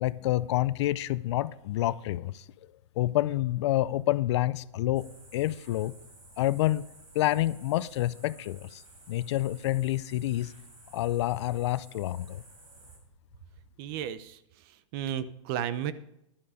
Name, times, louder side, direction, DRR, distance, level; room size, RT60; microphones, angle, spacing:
voice 1, 0.0-2.4 3.0-5.1 5.3-5.9 6.4-6.9 7.1-8.8 9.1-10.5 10.9-12.4, left 15 dB, 60° left, 18 dB, 0.5 m, -28 dB
sound 1, 4.9-13.0, right 2 dB, 90° right, 6.0 m, -54 dB
voice 2, 13.8-14.4 14.9-15.9, right 10 dB, 45° right, 15 dB, 0.9 m, -33 dB
11.5 x 10.5 x 4.9 m, 0.84 s
hypercardioid pair, 135°, 17 cm